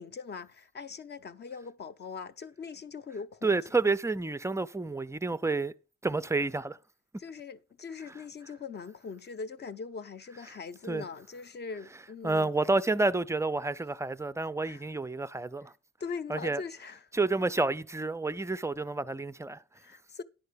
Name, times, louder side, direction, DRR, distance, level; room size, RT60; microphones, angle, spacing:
voice 1, 0.0-3.5 7.2-12.5 14.6-14.8 16.0-17.1 19.7-20.2, left 5 dB, 35° left, 0.7 m, -41 dB
voice 2, 3.4-5.7 6.0-6.8 10.9-11.0 12.2-15.7 16.3-16.6 17.1-19.6, right 3 dB, 10° right, 0.4 m, -29 dB
10.5 x 4.4 x 6.7 m
cardioid pair, 90°, 30 cm